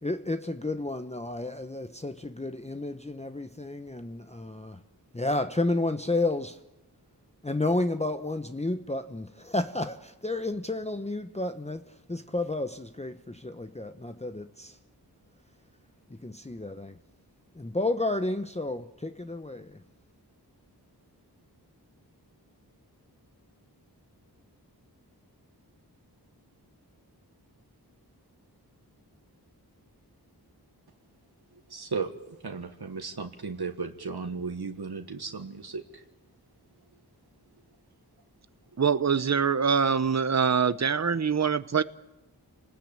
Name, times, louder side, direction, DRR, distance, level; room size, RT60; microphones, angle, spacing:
voice 1, 0.0-4.8 5.1-6.6 7.4-14.8 16.1-17.0 17.6-19.8, left 2 dB, 15° left, 0.9 m, -31 dB
voice 2, 31.7-36.0, right 4 dB, 70° right, 1.7 m, -35 dB
voice 3, 38.8-41.8, right 6 dB, 40° right, 0.9 m, -24 dB
28.5 x 19.5 x 8.8 m
wide cardioid pair, 55°, 39 cm